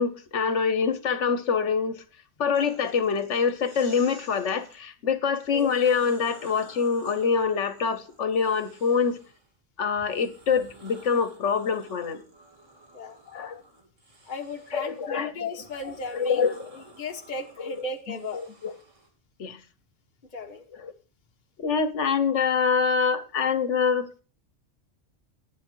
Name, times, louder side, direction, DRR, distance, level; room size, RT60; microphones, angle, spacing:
voice 1, 0.0-2.0 2.4-9.2 9.8-12.2 13.3-13.6 14.7-15.5 16.1-16.7 17.6-17.8 18.1-18.7 19.4-19.6 20.8-20.9 21.6-24.2, left 6 dB, 70° left, 1.3 m, -25 dB
sound 1, 2.5-4.8 5.4-9.5 9.9-19.1, right 2 dB, 85° right, 3.0 m, -52 dB
voice 2, 14.2-16.5 17.0-18.4 20.3-20.6, left 3 dB, 40° left, 1.3 m, -35 dB
11.0 x 10.0 x 4.6 m
omnidirectional pair, 1.3 m